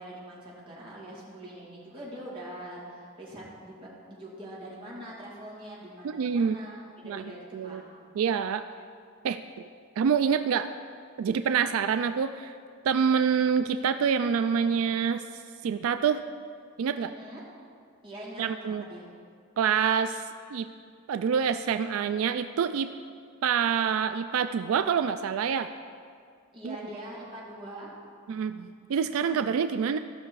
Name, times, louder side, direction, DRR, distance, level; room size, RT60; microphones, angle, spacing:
voice 1, 0.0-7.9 17.0-17.4 18.0-19.1 26.5-27.9, right 1 dB, 25° right, -7 dB, 2.5 m, -43 dB
voice 2, 6.0-6.6 7.0-7.2 7.5-7.8 8.2-8.7 9.2-9.4 10.0-10.7 11.2-12.5 12.8-15.2 15.6-16.2 16.8-17.1 18.4-18.8 19.6-20.2 20.5-20.7 21.1-22.9 23.4-25.7 26.6-26.8 28.3-30.0, right 7 dB, 85° right, 10 dB, 0.3 m, -26 dB
15.0 x 5.9 x 4.7 m, 2.2 s
head